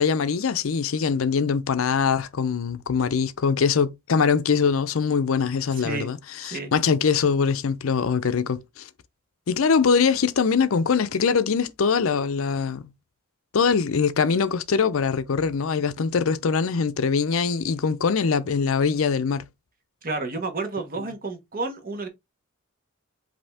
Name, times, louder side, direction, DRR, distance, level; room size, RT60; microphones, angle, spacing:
voice 1, 0.0-8.9 9.5-12.8 13.5-19.4, left 5 dB, 70° left, 0.5 m, -23 dB
voice 2, 20.0-22.1, right 3 dB, 45° right, 1.3 m, -30 dB
5.2 x 2.8 x 3.4 m
head